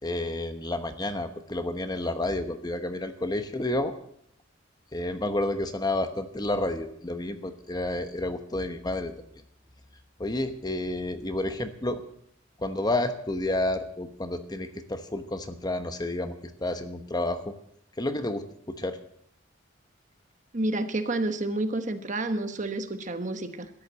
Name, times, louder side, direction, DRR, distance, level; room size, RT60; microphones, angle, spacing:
voice 1, 0.0-3.9 4.9-9.1 10.2-12.0 12.6-16.3 16.6-17.5 18.0-19.0, left 1 dB, 20° left, 8 dB, 1.0 m, -30 dB
voice 2, 20.5-23.7, right 2 dB, 40° right, 8 dB, 1.1 m, -29 dB
13.5 x 9.9 x 8.1 m, 0.71 s
head